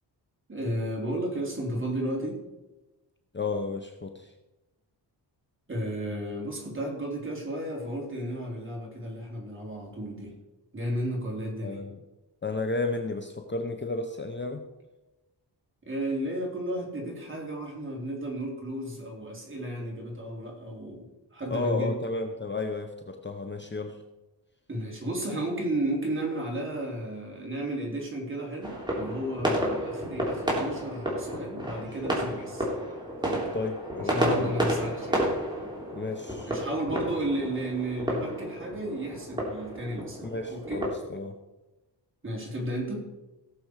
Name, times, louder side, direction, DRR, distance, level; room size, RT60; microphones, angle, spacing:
voice 1, 0.5-2.4 5.7-10.3 10.7-11.8 15.9-21.9 24.7-32.7 33.2-33.5 34.1-35.3 36.5-40.9 42.2-43.0, right 1 dB, 30° right, -2 dB, 3.9 m, -33 dB
voice 2, 3.3-4.3 11.6-12.0 12.4-14.6 21.5-24.0 33.5-34.5 35.9-36.5 40.2-41.4, left 3 dB, 25° left, 5 dB, 0.9 m, -33 dB
sound 1, 28.6-40.9, equal, 10° right, 3.3 m, -31 dB
17.5 x 7.0 x 4.8 m, 1.0 s
wide cardioid pair, 115°, 42 cm